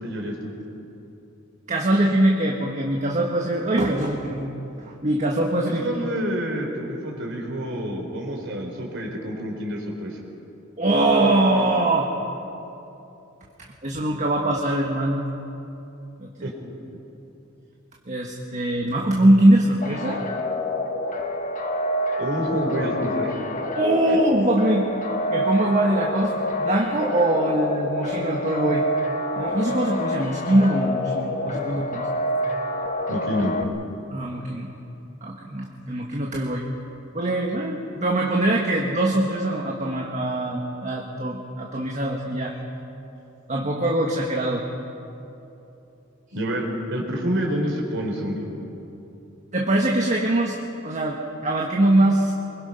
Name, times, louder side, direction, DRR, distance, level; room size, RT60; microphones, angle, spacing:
voice 1, 0.0-0.5 5.7-10.2 16.4-16.5 22.2-23.4 24.1-24.2 33.1-33.5 46.3-46.7 46.9-48.5, equal, 65° right, 1 dB, 4.1 m, -28 dB
voice 2, 1.7-4.5 4.8-5.8 10.8-12.1 13.8-15.3 16.2-16.5 18.1-20.2 23.7-24.9 25.3-26.3 26.6-28.9 29.4-32.1 34.1-34.7 35.2-36.6 37.1-42.6 43.5-44.6 49.5-50.6 50.8-51.2 51.4-52.3, right 1 dB, 35° right, -1 dB, 1.6 m, -22 dB
sound 1, 19.8-33.6, left 1 dB, 40° left, 1.5 m, -27 dB
24.5 x 22.0 x 5.7 m, 2.9 s
head